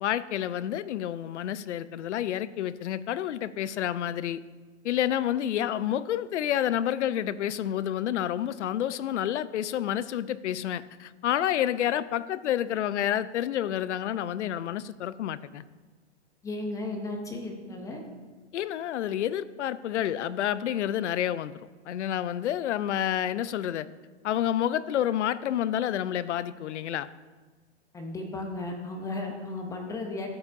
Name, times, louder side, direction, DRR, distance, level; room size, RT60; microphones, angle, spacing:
voice 1, 0.0-4.4 4.8-15.6 18.5-23.9 24.2-27.1, left 11 dB, 85° left, 17 dB, 0.5 m, -29 dB
voice 2, 16.4-18.0 27.9-30.3, left 2 dB, 10° left, 3 dB, 0.5 m, -35 dB
13.5 x 7.1 x 2.6 m, 1.3 s
hypercardioid pair, 145°, 34 cm